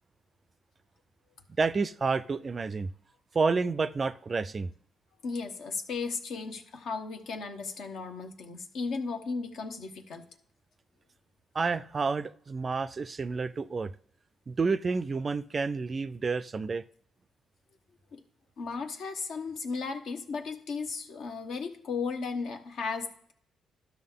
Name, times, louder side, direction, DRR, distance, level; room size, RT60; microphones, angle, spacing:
voice 1, 1.6-2.9 3.3-4.7 11.5-13.9 14.5-16.8, right 4 dB, 35° right, 0.3 m, -29 dB
voice 2, 5.2-10.3 18.1-18.2 18.6-23.3, left 4 dB, 70° left, 1.0 m, -35 dB
12.5 x 5.8 x 3.7 m
cardioid pair, 90°, 0 cm